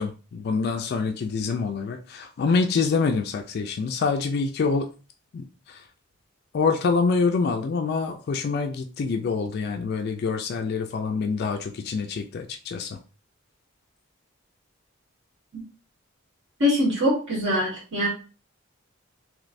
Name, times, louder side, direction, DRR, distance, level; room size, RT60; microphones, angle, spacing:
voice 1, 0.0-4.9 5.3-5.8 6.5-13.0, left 4 dB, 50° left, 5 dB, 0.3 m, -26 dB
voice 2, 16.6-18.1, left 1 dB, 60° right, -5 dB, 1.5 m, -23 dB
3.2 x 3.0 x 2.5 m, 0.36 s
head